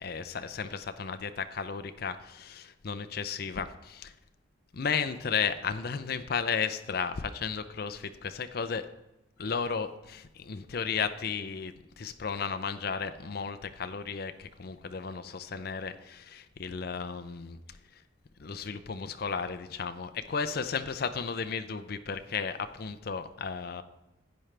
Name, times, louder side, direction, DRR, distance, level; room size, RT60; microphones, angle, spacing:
voice 1, 0.0-4.1 4.7-8.9 9.4-17.6 17.9-18.0 18.4-23.8, left 6 dB, 50° left, 10 dB, 0.5 m, -34 dB
10.5 x 8.9 x 3.3 m, 0.94 s
head